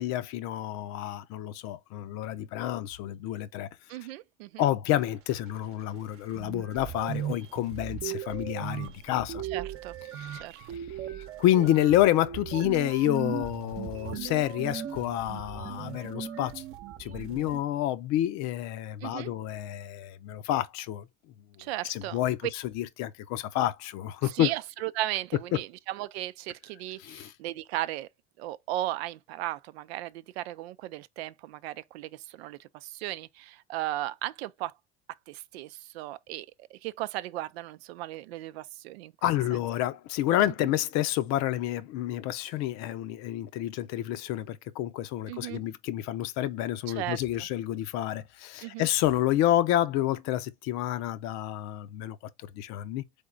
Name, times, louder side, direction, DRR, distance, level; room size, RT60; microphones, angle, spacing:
voice 1, 0.0-3.7 4.6-9.4 10.1-10.4 11.4-16.6 17.0-21.1 21.8-24.5 27.0-27.3 39.2-52.2 52.5-53.0, left 13 dB, 60° left, 0.7 m, -29 dB
voice 2, 3.9-4.7 9.5-10.0 10.3-10.6 19.0-19.3 21.6-22.2 24.2-28.1 28.4-34.7 35.3-36.5 36.7-39.1 40.6-40.7 45.3-45.6 46.9-47.2 48.6-48.9, right 15 dB, 80° right, 0.5 m, -36 dB
sound 1, 6.0-6.1 6.4-17.6, right 9 dB, 45° right, 0.9 m, -38 dB
3.8 x 3.6 x 3.8 m
hypercardioid pair, 85°, 31 cm